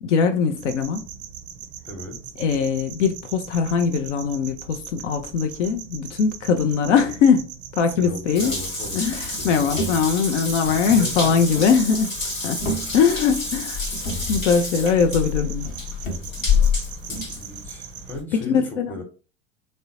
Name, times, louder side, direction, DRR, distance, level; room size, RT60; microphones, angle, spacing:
voice 1, 0.0-1.1 2.4-8.6 8.9-12.1 12.4-12.7 12.9-13.8 14.3-15.7 18.3-19.0, left 6 dB, 65° left, 0.5 m, -21 dB
sound 1, 0.6-18.1, right 8 dB, 30° right, 0.5 m, -40 dB
voice 2, 1.8-2.2 8.0-9.8 10.6-11.3 12.6-13.0 17.1-19.0, left 2 dB, 5° left, 0.9 m, -37 dB
Water tap faucet / Bathtub (filling or washing) / Drip, 8.3-18.2, left 5 dB, 90° left, 1.1 m, -28 dB
sound 2, 8.9-10.4 11.4-12.2 12.5-13.3 13.9-14.6 15.6-16.5 17.1-17.2, right 2 dB, 40° left, 0.9 m, -33 dB
3.5 x 2.1 x 2.8 m
figure-of-eight pair, 75°, 39 cm